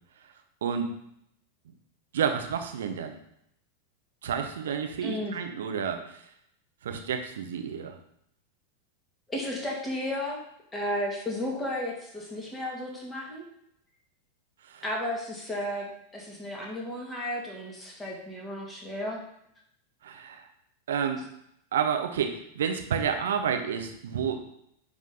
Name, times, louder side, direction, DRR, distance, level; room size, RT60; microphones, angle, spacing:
voice 1, 2.1-3.2 4.2-6.2 6.8-8.0 14.6-14.8 20.0-20.4 20.9-21.2 21.7-24.4, right 7 dB, 60° right, 6 dB, 0.8 m, -30 dB
voice 2, 5.0-5.3 9.3-10.4 10.7-13.4 14.8-19.2, left 1 dB, 10° left, -2 dB, 2.1 m, -33 dB
9.7 x 3.7 x 3.8 m, 0.74 s
figure-of-eight pair, 90°, 0 cm